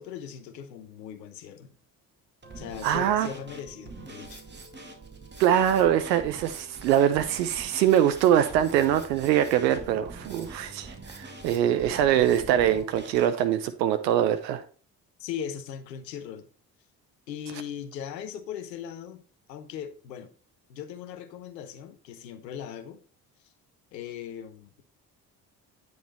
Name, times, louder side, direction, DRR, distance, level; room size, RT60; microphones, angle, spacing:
voice 1, 0.0-1.7 2.6-4.4 15.2-16.5 17.3-19.2 19.5-20.3 20.7-23.0 23.9-24.8, left 8 dB, 80° left, 1.0 m, -39 dB
Drum kit, 2.4-13.3, right 2 dB, 20° right, 2.2 m, -44 dB
voice 2, 2.8-3.3 5.4-14.6, right 10 dB, 80° right, 0.7 m, -23 dB
9.2 x 4.8 x 4.0 m
figure-of-eight pair, 45°, 49 cm